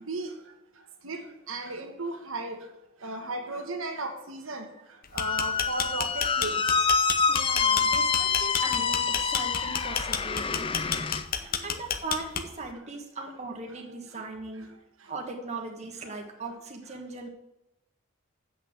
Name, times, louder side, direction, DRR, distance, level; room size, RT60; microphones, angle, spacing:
voice 1, 1.5-2.6 3.0-4.7 5.1-6.6 14.2-14.3, right 2 dB, 80° right, 3 dB, 1.5 m, -35 dB
sound 1, 5.0-12.7, left 7 dB, 45° left, 0.8 m, -30 dB
Squeak, 5.2-11.3, left 5 dB, 25° left, 0.4 m, -27 dB
voice 2, 7.3-10.7 11.4-14.7 15.1-17.3, right 3 dB, 35° right, 2 dB, 1.4 m, -39 dB
7.9 x 6.5 x 7.8 m, 0.92 s
head